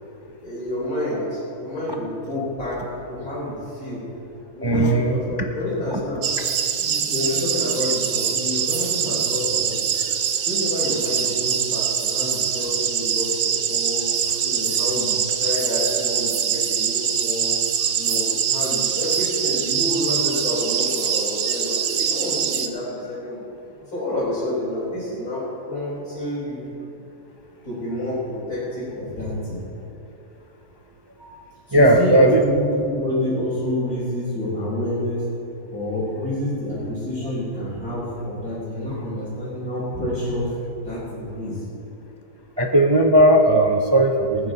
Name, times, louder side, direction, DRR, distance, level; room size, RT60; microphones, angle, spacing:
voice 1, 0.4-2.8 3.1-4.1 4.5-6.3 6.8-9.9 10.4-14.1 14.4-17.6 17.9-23.4 23.8-26.6 27.6-29.6 31.7-35.3 35.7-40.5 40.8-41.6, left 1 dB, 85° left, -12 dB, 4.2 m, -28 dB
voice 2, 4.6-5.2 31.2-31.3 31.7-32.4 42.6-44.5, right 1 dB, 40° right, 3 dB, 0.3 m, -16 dB
sound 1, 6.2-22.7, right 8 dB, 65° right, 1.1 m, -23 dB
20.0 x 9.7 x 4.0 m, 2.9 s
omnidirectional pair, 1.5 m